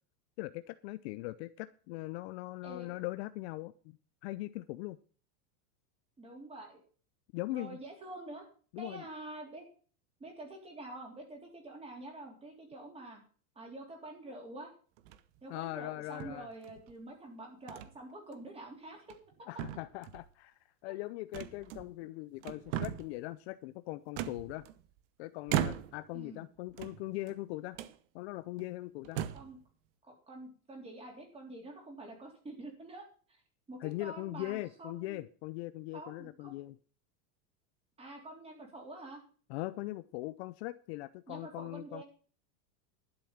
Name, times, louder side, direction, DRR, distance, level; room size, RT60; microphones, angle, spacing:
voice 1, 0.4-4.0 4.2-5.0 7.3-7.8 8.7-9.1 15.5-16.5 19.5-24.7 25.2-27.8 28.1-29.2 33.8-36.8 39.5-42.0, left 19 dB, 45° left, 14 dB, 0.5 m, -40 dB
voice 2, 2.6-2.9 6.2-6.8 7.5-8.4 8.8-9.7 10.2-13.2 13.6-14.7 15.4-19.2 20.9-21.0 26.1-26.5 29.3-29.6 30.0-33.1 33.7-35.2 35.9-36.5 38.0-39.2 41.3-42.0, right 2 dB, 15° right, 2 dB, 3.6 m, -47 dB
sound 1, 15.0-15.4 16.2-16.9 17.7-17.9 18.3-18.5 19.0-19.3 19.6-20.3 21.3-22.1 22.4-23.2 24.2-25.0 25.5-26.1 26.7-27.4 27.7-28.0 28.6-28.7 29.0-29.6, right 11 dB, 50° right, 1.0 m, -38 dB
11.5 x 7.0 x 7.2 m, 0.42 s
supercardioid pair, 155°, 44 cm